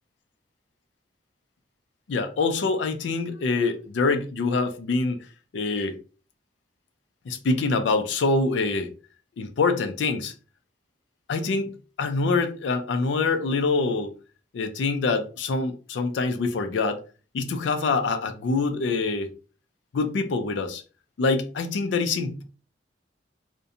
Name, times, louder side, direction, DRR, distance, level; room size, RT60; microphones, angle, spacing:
voice 1, 2.1-5.3 5.5-6.0 7.3-8.9 9.4-10.3 11.3-11.7 12.0-14.1 14.5-17.0 17.3-19.3 19.9-20.8 21.2-22.4, left 3 dB, 85° left, 0.4 m, -25 dB
2.5 x 2.1 x 2.6 m
head